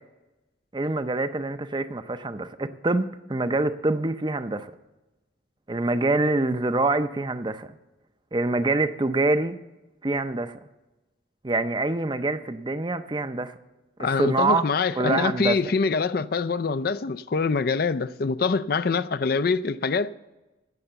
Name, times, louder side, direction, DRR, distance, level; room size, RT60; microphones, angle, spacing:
voice 1, 0.7-4.7 5.7-7.7 8.3-9.6 10.0-10.6 11.4-13.6 14.0-14.7 15.0-15.7, right 2 dB, 25° right, 0.6 m, -25 dB
voice 2, 14.0-20.1, left 4 dB, 55° left, 0.4 m, -24 dB
16.5 x 6.9 x 6.8 m
head